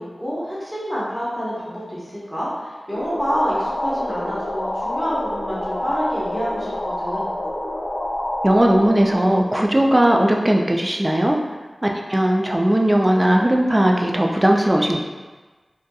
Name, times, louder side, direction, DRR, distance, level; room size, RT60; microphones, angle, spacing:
voice 1, 0.0-7.4, equal, 5° right, -8 dB, 0.8 m, -27 dB
sound 1, 2.9-10.3, left 1 dB, 65° left, 0.4 m, -28 dB
voice 2, 8.4-11.4 11.8-15.0, right 1 dB, 25° right, 0 dB, 0.3 m, -18 dB
2.6 x 2.5 x 2.2 m, 1.3 s
wide cardioid pair, 45°, 0 cm